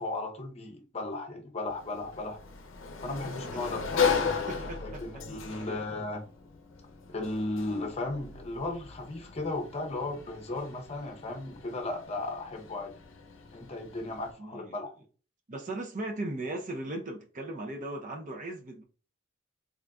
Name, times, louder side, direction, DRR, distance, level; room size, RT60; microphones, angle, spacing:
voice 1, 0.0-2.4 3.0-4.2 4.8-6.2 7.1-12.9 13.5-14.9, left 2 dB, 30° left, 0.7 m, -35 dB
Sliding door, 1.7-14.3, left 6 dB, 70° left, 0.6 m, -36 dB
voice 2, 4.3-5.8 14.4-14.8 15.5-18.8, right 2 dB, 40° right, 0.6 m, -38 dB
3.8 x 3.7 x 2.2 m
head